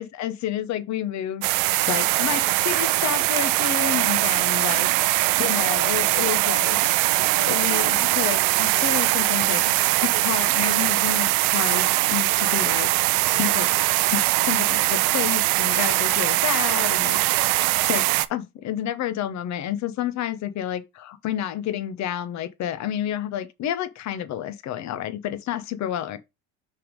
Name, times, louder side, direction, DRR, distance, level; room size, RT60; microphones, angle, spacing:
voice 1, 0.0-1.4 1.9-4.9 5.4-6.8 7.4-9.6 10.0-12.9 13.3-13.7 14.0-17.2 17.8-26.2, left 11 dB, 50° left, 1.0 m, -30 dB
sound 1, 1.4-18.3, right 19 dB, 70° right, 0.6 m, -21 dB
5.7 x 3.6 x 5.2 m
supercardioid pair, 100°, 36 cm